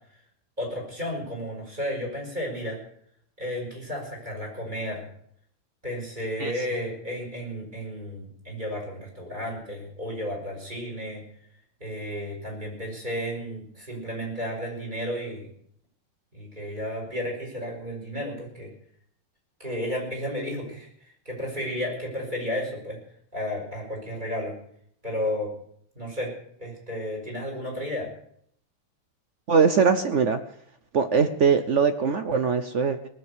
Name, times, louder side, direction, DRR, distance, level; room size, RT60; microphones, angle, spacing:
voice 1, 0.6-2.8 3.4-5.1 5.8-11.2 11.8-15.5 16.3-18.7 19.6-20.9 21.3-23.0 23.3-24.6 25.0-25.5 26.0-26.3 26.6-28.1, equal, 20° right, 0 dB, 5.9 m, -32 dB
voice 2, 29.5-30.4 30.9-33.1, right 5 dB, 75° right, 9 dB, 0.6 m, -21 dB
19.0 x 7.7 x 8.3 m, 0.65 s
omnidirectional pair, 2.4 m